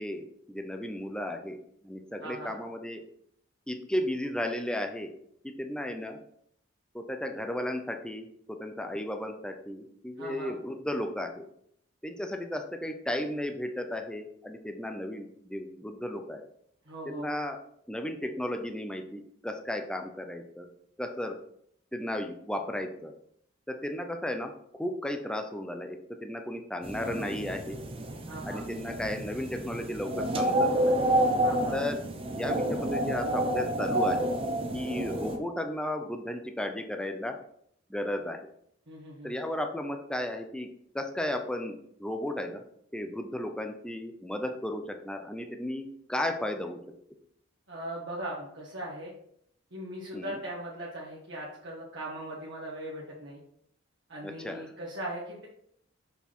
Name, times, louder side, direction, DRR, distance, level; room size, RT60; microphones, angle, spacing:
voice 1, 0.0-1.6 1.8-3.0 3.7-5.1 5.4-6.2 6.9-11.4 12.0-16.4 17.1-17.6 17.9-20.7 21.0-21.4 21.9-23.1 23.7-27.8 28.5-31.0 31.7-32.0 32.3-34.4 34.7-37.4 37.9-38.4 39.2-40.7 40.9-42.6 42.9-46.8 50.1-50.4 54.2-54.6, left 1 dB, 5° left, 5 dB, 0.6 m, -34 dB
voice 2, 2.2-2.5 10.2-10.5 16.8-17.3 28.3-28.7 31.4-31.8 38.9-39.4 47.7-49.1 49.7-53.4 54.1-55.5, right 1 dB, 60° right, -5 dB, 1.6 m, -39 dB
sound 1, 26.8-35.4, right 1 dB, 30° right, 0.8 m, -29 dB
6.5 x 5.7 x 4.5 m, 0.70 s
head